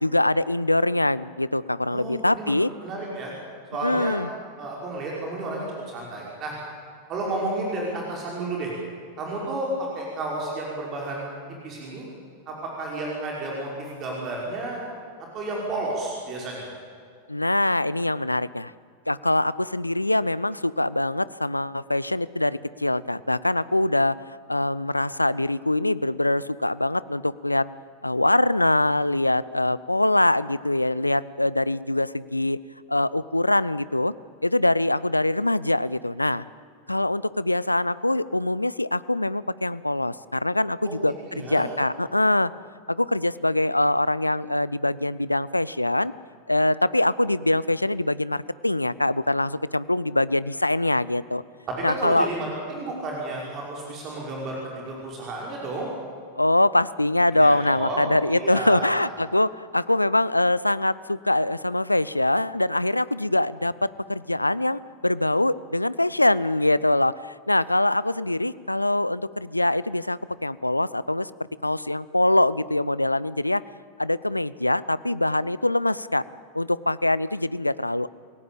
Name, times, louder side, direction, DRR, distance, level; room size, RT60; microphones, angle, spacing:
voice 1, 0.0-2.7 3.8-4.3 17.3-18.7 19.1-27.7 28.0-32.6 32.9-34.1 34.4-36.4 36.9-42.5 42.9-46.1 46.5-51.4 51.8-52.3 56.4-71.3 71.6-73.6 74.0-76.2 76.5-78.1, left 1 dB, 85° left, 19 dB, 0.5 m, -23 dB
voice 2, 1.9-2.5 2.8-3.3 3.7-4.2 4.6-6.5 7.1-8.7 9.2-11.3 11.6-12.1 12.5-14.8 15.3-16.7 40.8-41.0 41.3-41.7 51.7-55.9 57.3-58.0 58.3-59.1, right 2 dB, 35° right, -2 dB, 5.8 m, -31 dB
28.0 x 17.5 x 8.8 m, 2.1 s
figure-of-eight pair, 90°, 0 cm